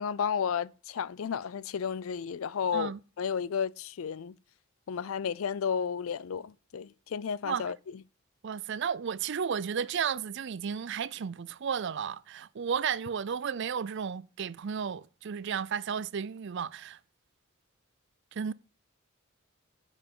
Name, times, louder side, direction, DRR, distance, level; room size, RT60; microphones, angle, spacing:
voice 1, 0.0-2.9 3.2-4.3 4.9-7.8, left 7 dB, 80° left, 0.4 m, -32 dB
voice 2, 8.4-17.0 18.3-18.5, right 7 dB, 55° right, 0.4 m, -33 dB
7.1 x 6.8 x 5.5 m
head